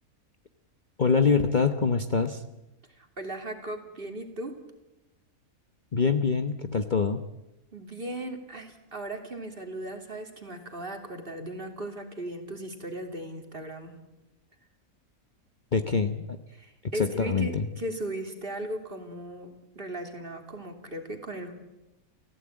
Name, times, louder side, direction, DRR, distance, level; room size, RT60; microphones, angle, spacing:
voice 1, 1.0-2.4 5.9-7.2 15.7-16.4 16.8-17.7, left 5 dB, 35° left, 7 dB, 1.1 m, -25 dB
voice 2, 2.9-4.5 7.7-14.0 16.5-21.5, right 1 dB, 40° right, 4 dB, 3.2 m, -37 dB
29.5 x 16.0 x 8.9 m, 0.99 s
omnidirectional pair, 1.5 m